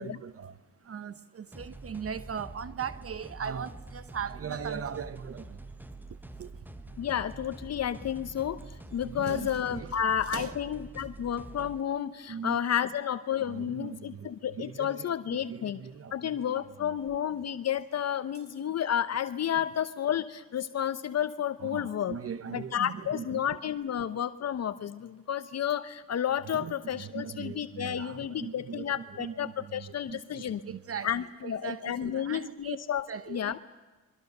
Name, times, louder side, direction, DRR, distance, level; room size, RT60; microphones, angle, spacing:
voice 1, 0.0-5.8 6.1-6.6 9.0-10.0 10.3-10.6 12.3-12.6 13.4-16.9 19.6-19.7 21.6-23.5 26.5-31.1 31.4-32.8 33.1-33.6, right 7 dB, 45° right, 1.0 m, -40 dB
sound 1, 1.5-11.8, right 2 dB, 5° right, 1.1 m, -46 dB
voice 2, 7.0-8.6 8.9-15.8 16.1-22.2 22.5-30.6 31.0-33.0 33.3-33.6, left 9 dB, 50° left, 0.9 m, -31 dB
28.5 x 23.5 x 6.7 m
cardioid pair, 85°, 33 cm